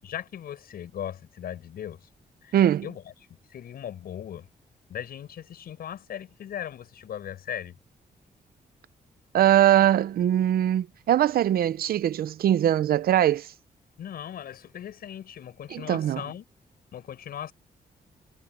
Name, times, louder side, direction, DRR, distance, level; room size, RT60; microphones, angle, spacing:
voice 1, 0.0-2.1 2.4-3.0 3.3-4.5 4.9-7.8 14.0-16.5 16.9-17.5, left 10 dB, 80° left, 7.9 m, -38 dB
voice 2, 2.5-2.8 9.3-13.5 15.7-16.2, right 11 dB, 80° right, 0.7 m, -21 dB
cardioid pair, 105°, 15 cm